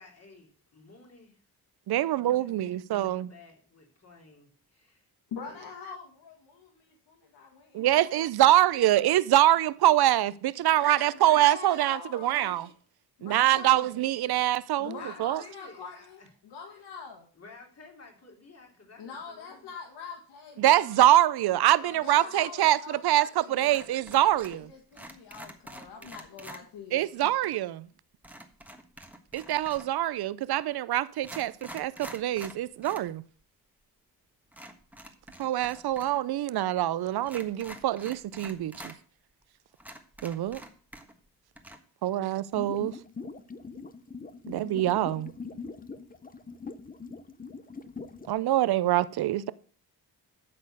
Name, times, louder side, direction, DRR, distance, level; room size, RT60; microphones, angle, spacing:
voice 1, 0.0-1.4 1.9-5.1 5.5-5.7 15.0-16.3 16.7-16.8 17.3-19.7 21.8-22.3, left 3 dB, 40° left, 3.3 m, -53 dB
voice 2, 1.9-3.3 7.7-12.7 13.2-15.4 20.6-24.7 26.9-27.9 29.3-33.2 35.4-38.9 40.2-40.6 42.0-42.9 44.5-45.3 48.3-49.5, right 13 dB, 70° right, 0.6 m, -25 dB
voice 3, 5.3-8.1 10.6-12.7 13.2-13.9 14.8-17.3 19.0-21.0 22.0-27.3, left 5 dB, 90° left, 1.6 m, -44 dB
sound 1, 23.7-24.7 24.9-26.6 28.2-30.0 30.7-30.8 31.2-33.1 33.4-33.5 34.5-36.2 36.4-36.5 37.2-39.0 39.4-39.5 39.8-41.3 41.5-41.8, right 1 dB, 5° right, 1.4 m, -46 dB
sound 2, 42.5-48.3, left 4 dB, 20° left, 0.7 m, -42 dB
12.0 x 4.3 x 6.6 m
cardioid pair, 85°, 40 cm